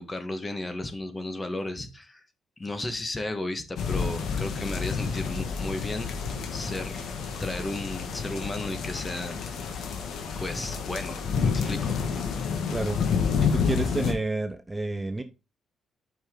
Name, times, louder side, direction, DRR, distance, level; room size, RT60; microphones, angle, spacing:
voice 1, 0.0-2.2 2.6-6.1 6.5-7.1 7.4-9.5 10.4-12.0, left 2 dB, 20° left, 9 dB, 1.4 m, -34 dB
sound 1, 3.8-14.1, left 6 dB, 70° left, 1.6 m, -29 dB
voice 2, 13.4-15.2, right 2 dB, 15° right, 8 dB, 0.7 m, -29 dB
8.7 x 5.7 x 3.8 m, 0.28 s
cardioid pair, 90°, 0 cm